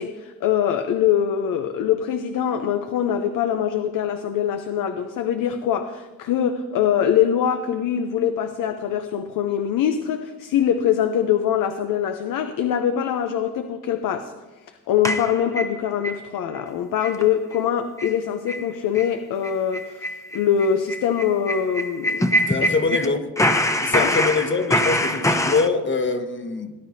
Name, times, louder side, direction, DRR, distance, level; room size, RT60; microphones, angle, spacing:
voice 1, 0.0-14.3 14.7-22.2 23.9-24.1, left 9 dB, 75° left, 8 dB, 0.7 m, -23 dB
sound 1, 15.0-16.2 16.6-16.7 17.0-17.2 17.5-17.6 18.0-18.2 18.5-18.7 18.9-19.1 19.4-23.1 23.4-25.7, equal, 10° left, 0.8 m, -23 dB
voice 2, 22.5-23.3 23.8-26.7, left 4 dB, 35° left, 7 dB, 1.2 m, -23 dB
18.5 x 10.0 x 2.8 m, 1.2 s
cardioid pair, 80°, 33 cm